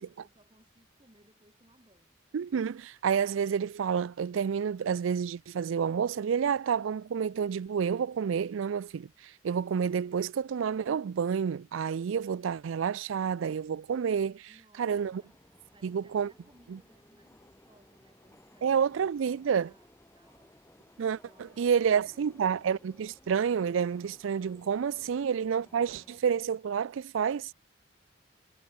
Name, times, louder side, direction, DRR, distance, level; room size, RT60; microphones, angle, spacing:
voice 1, 0.0-2.2 14.5-15.4 15.7-20.6 21.3-22.9, right 1 dB, 25° right, 7.2 m, -63 dB
voice 2, 2.3-14.5 14.8-15.2 15.8-16.3 16.7-16.8 18.6-19.7 21.0-27.5, right 7 dB, 75° right, 0.4 m, -29 dB
sound 1, 14.9-26.2, left 1 dB, 15° left, 3.0 m, -60 dB
head